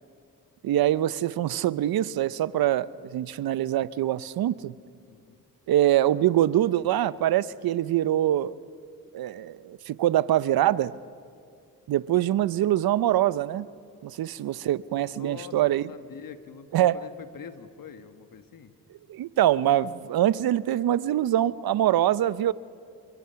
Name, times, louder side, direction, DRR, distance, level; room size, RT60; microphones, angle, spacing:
voice 1, 0.6-4.7 5.7-8.5 9.1-11.0 11.9-13.7 14.0-15.9 16.7-17.0 19.1-22.5, right 12 dB, 70° right, 18 dB, 0.7 m, -24 dB
voice 2, 5.1-5.4 15.1-18.7, left 7 dB, 60° left, 10 dB, 1.5 m, -45 dB
29.5 x 22.0 x 5.8 m, 2.2 s
cardioid pair, 65°, 37 cm